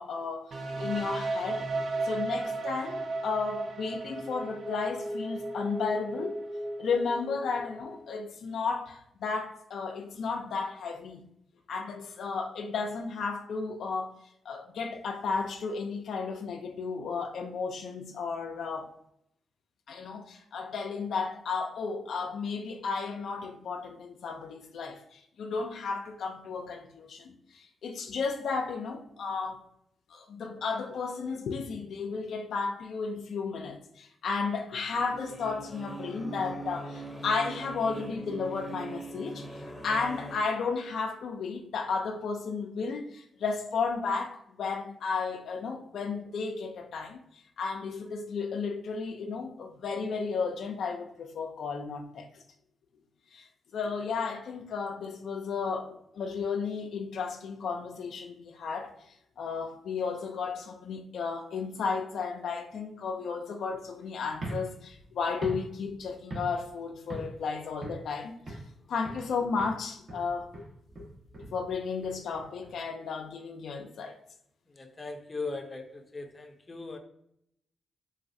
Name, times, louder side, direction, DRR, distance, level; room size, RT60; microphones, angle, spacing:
voice 1, 0.0-1.7 2.0-6.4 6.8-11.3 11.7-14.1 14.5-18.9 19.9-29.6 30.1-52.3 53.3-53.5 53.7-68.6 68.9-70.5 71.5-74.2, left 5 dB, 75° left, 0.3 m, -33 dB
sound 1, 0.5-8.2, right 2 dB, 65° right, 0.4 m, -35 dB
sound 2, 34.9-40.4, right 2 dB, ahead, 0.9 m, -41 dB
sound 3, 64.3-66.8 67.1-67.4 67.8-68.7 69.0-69.3 69.6-72.7, right 1 dB, 45° right, 1.1 m, -41 dB
voice 2, 74.8-77.0, left 3 dB, 30° left, 0.6 m, -39 dB
3.8 x 2.3 x 2.6 m
cardioid pair, 65°, 0 cm